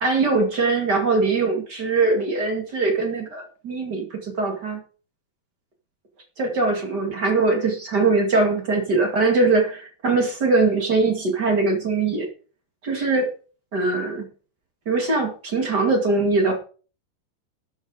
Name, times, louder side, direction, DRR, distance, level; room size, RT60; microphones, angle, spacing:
voice 1, 0.0-4.8 6.4-12.3 12.8-13.3 13.7-14.3 14.9-16.6, right 3 dB, 35° right, 3 dB, 1.9 m, -21 dB
13.0 x 7.9 x 4.9 m, 0.39 s
omnidirectional pair, 4.5 m